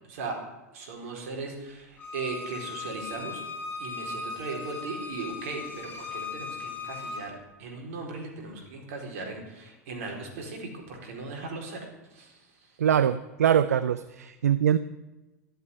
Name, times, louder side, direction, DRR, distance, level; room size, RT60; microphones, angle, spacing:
voice 1, 0.1-0.4 0.7-3.4 3.8-11.9 12.1-12.4, right 3 dB, 65° right, 2 dB, 4.5 m, -38 dB
Bowed string instrument, 2.0-7.2, left 4 dB, 25° left, 4.0 m, -38 dB
voice 2, 12.8-14.8, right 9 dB, 80° right, 14 dB, 0.5 m, -23 dB
13.0 x 7.9 x 10.0 m, 1.1 s
hypercardioid pair, 90°, 8 cm